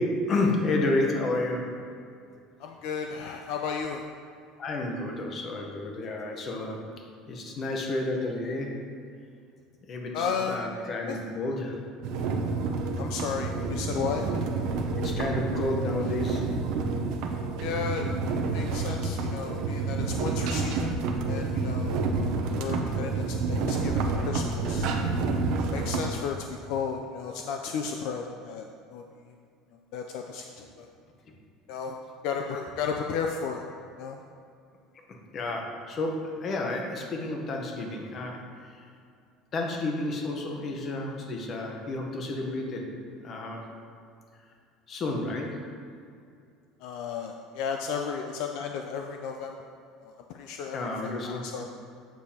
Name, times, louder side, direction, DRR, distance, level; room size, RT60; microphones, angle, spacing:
voice 1, 0.0-1.7 4.6-6.8 7.3-8.7 9.9-11.8 14.9-16.4 35.3-38.4 38.7-38.8 39.5-42.9 43.2-43.6 44.9-45.6 50.7-51.4, left 2 dB, 30° left, 1 dB, 0.9 m, -30 dB
voice 2, 2.6-4.0 10.1-10.6 11.1-11.2 13.0-14.3 17.6-18.1 18.5-21.0 21.3-25.1 25.7-29.3 29.9-30.9 31.7-32.0 32.2-33.6 34.0-34.2 46.8-49.6 50.0-51.7, left 6 dB, 60° left, 3 dB, 0.4 m, -34 dB
sound 1, 12.0-26.1, right 3 dB, 55° right, 0.6 m, -29 dB
7.9 x 6.6 x 2.8 m, 2.4 s
cardioid pair, 175°, 0 cm